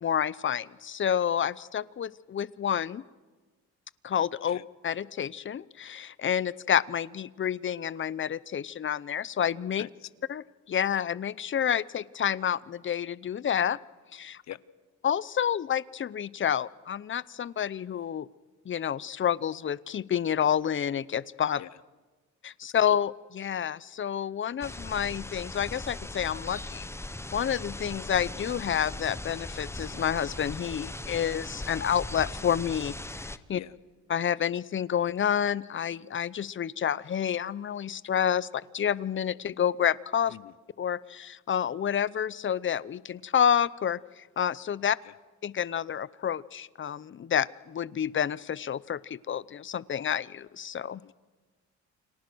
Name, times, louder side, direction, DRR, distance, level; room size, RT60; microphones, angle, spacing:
voice 1, 0.0-3.0 4.0-4.6 4.8-9.9 10.3-13.8 14.1-14.4 15.0-18.3 18.6-21.6 22.4-26.9 27.3-33.6 34.1-38.5 38.7-40.4 40.8-45.0 45.4-51.0, left 9 dB, 40° left, 20 dB, 0.8 m, -29 dB
voice 2, 4.5-4.6 9.8-9.9 14.5-14.6 21.6-21.7 33.5-33.7 40.3-40.5 51.0-51.1, left 12 dB, 65° left, 18 dB, 1.0 m, -43 dB
sound 1, 24.6-33.4, left 2 dB, 10° left, 1.0 m, -39 dB
29.5 x 26.0 x 6.3 m, 1.3 s
cardioid pair, 90°, 30 cm